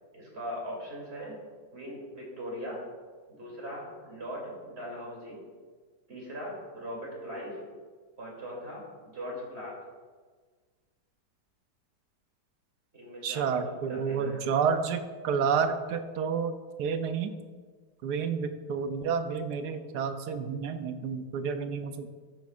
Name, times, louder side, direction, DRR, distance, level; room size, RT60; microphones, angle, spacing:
voice 1, 0.1-1.4 1.7-2.8 3.3-5.4 6.1-7.6 8.2-9.7 12.9-14.5, equal, 35° right, -3 dB, 3.0 m, -40 dB
voice 2, 13.2-16.5 16.8-17.3 18.0-22.1, right 6 dB, 75° right, 9 dB, 1.1 m, -30 dB
12.5 x 7.7 x 2.4 m, 1.5 s
omnidirectional pair, 1.9 m